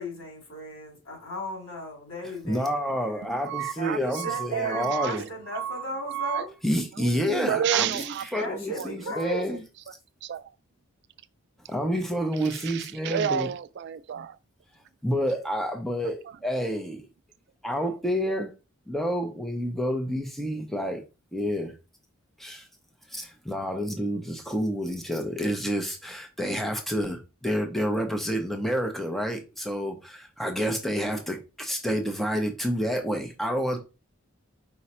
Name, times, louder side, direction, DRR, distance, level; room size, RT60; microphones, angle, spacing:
voice 1, 0.0-3.2 3.7-6.5 8.3-9.6, left 1 dB, 75° left, 2.6 m, -36 dB
voice 2, 2.4-5.2 6.6-9.6 11.7-13.5 15.0-17.0 17.6-18.5 18.9-21.0 21.3-21.7 22.4-22.7 23.1-33.8, equal, ahead, 0.6 m, -29 dB
voice 3, 3.5-6.5 6.9-8.3 8.8-9.4 10.2-10.5 12.4-14.4, right 9 dB, 55° right, 0.3 m, -31 dB
4.9 x 2.2 x 4.2 m
head